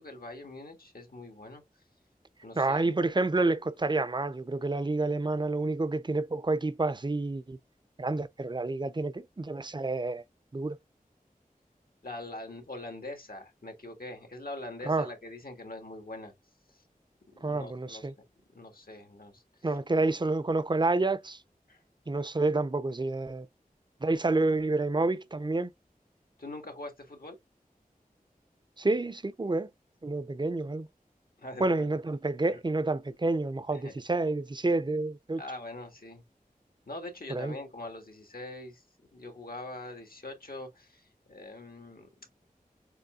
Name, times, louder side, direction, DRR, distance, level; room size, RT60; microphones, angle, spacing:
voice 1, 0.0-1.6 2.4-3.4 12.0-16.3 16.7-16.8 17.3-18.1 18.5-19.4 21.7-21.8 26.4-27.4 31.4-32.0 32.5-32.6 33.7-33.9 35.4-36.2 36.9-38.8 39.1-42.1, left 2 dB, 80° left, 1.7 m, -43 dB
voice 2, 2.6-7.6 8.0-10.2 10.5-10.8 14.9-15.1 17.4-18.1 19.6-21.4 22.1-23.5 24.0-25.7 28.8-29.7 30.0-30.9 31.6-35.4 37.3-37.6, right 2 dB, 30° right, 0.5 m, -29 dB
6.8 x 3.2 x 2.3 m
wide cardioid pair, 45°, 15 cm